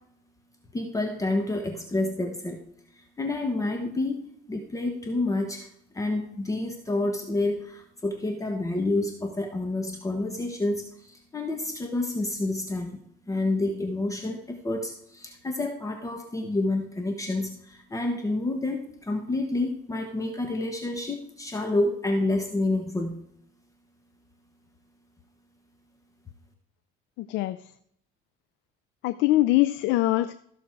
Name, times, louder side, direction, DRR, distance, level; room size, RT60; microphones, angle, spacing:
voice 1, 0.7-2.6 2.9-5.7 5.9-13.0 13.3-23.2, left 2 dB, 15° left, 4 dB, 1.3 m, -29 dB
voice 2, 27.2-27.7 29.0-30.3, left 17 dB, 70° left, 14 dB, 0.5 m, -23 dB
14.5 x 6.3 x 4.6 m, 0.73 s
cardioid pair, 115°, 20 cm